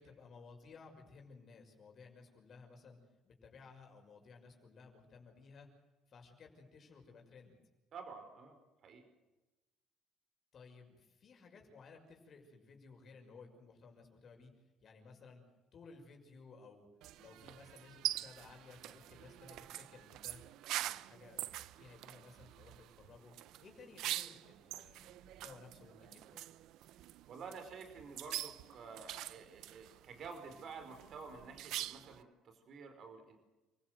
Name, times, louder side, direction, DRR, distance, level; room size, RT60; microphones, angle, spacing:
voice 1, 0.0-3.0 3.2-5.7 6.1-7.6 10.5-15.4 15.7-16.9 17.2-20.4 20.7-23.3 23.6-26.4, left 4 dB, 45° left, 2 dB, 6.2 m, -57 dB
voice 2, 7.9-9.1 27.3-33.4, right 5 dB, 55° right, 7 dB, 4.8 m, -50 dB
sound 1, 17.0-32.2, right 14 dB, 75° right, 0.8 m, -45 dB
29.0 x 16.0 x 8.0 m, 1.1 s
cardioid pair, 100°, 0 cm